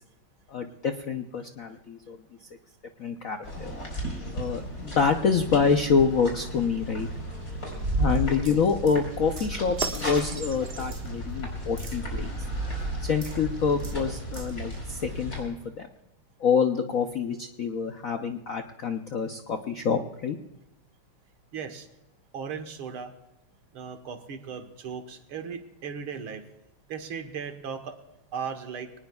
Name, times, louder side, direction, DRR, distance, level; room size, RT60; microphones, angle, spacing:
voice 1, 0.5-2.2 3.0-3.7 4.3-7.1 8.0-12.4 13.0-15.9 16.4-20.4, left 6 dB, 65° left, 5 dB, 0.8 m, -26 dB
sound 1, 3.4-15.4, equal, 40° left, 4.9 m, -36 dB
sound 2, 7.7-14.9, right 2 dB, 30° right, 1.4 m, -34 dB
voice 2, 21.5-21.9 22.3-23.1 23.7-26.4 26.9-28.0 28.3-28.9, right 6 dB, 75° right, 6 dB, 2.1 m, -37 dB
23.5 x 19.5 x 2.3 m, 1.0 s
omnidirectional pair, 2.4 m